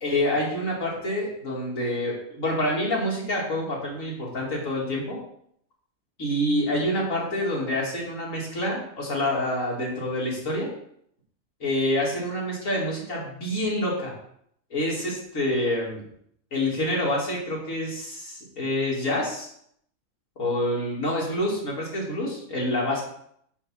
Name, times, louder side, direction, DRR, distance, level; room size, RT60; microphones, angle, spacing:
voice 1, 0.0-5.2 6.2-10.7 11.6-14.1 14.7-16.0 16.5-19.5 20.4-23.0, left 1 dB, 70° left, -4 dB, 2.8 m, -27 dB
6.1 x 5.8 x 5.6 m, 0.70 s
omnidirectional pair, 1.4 m